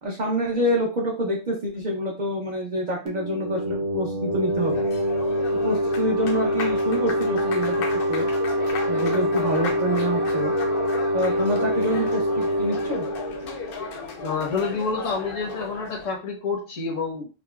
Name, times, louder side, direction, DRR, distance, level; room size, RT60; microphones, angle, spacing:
voice 1, 0.0-4.8 5.6-7.7 8.1-8.3 8.9-10.5 11.1-13.1, equal, 45° right, -2 dB, 0.6 m, -27 dB
sound 1, 3.1-14.5, equal, 90° right, 1.1 m, -25 dB
Applause, 4.3-16.2, left 5 dB, 60° left, 0.7 m, -35 dB
voice 2, 14.2-17.3, left 4 dB, 85° left, -1 dB, 1.4 m, -28 dB
4.9 x 2.0 x 2.3 m, 0.34 s
omnidirectional pair, 1.3 m